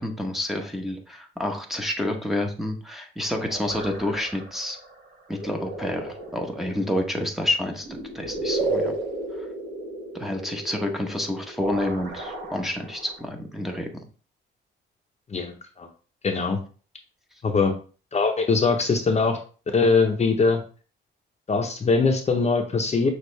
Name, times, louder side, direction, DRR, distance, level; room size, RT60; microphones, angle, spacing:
voice 1, 0.0-4.8 5.3-7.9 8.1-8.9 9.4-9.5 10.1-14.0, left 1 dB, ahead, 1 dB, 0.9 m, -29 dB
sound 1, 3.2-13.3, right 2 dB, 60° right, 1.9 m, -34 dB
voice 2, 15.3-15.9 16.2-16.6 17.4-17.7 18.1-19.4 19.7-20.6 21.5-23.1, left 4 dB, 35° left, 4 dB, 0.8 m, -22 dB
6.4 x 2.5 x 3.2 m, 0.38 s
cardioid pair, 90°, 20 cm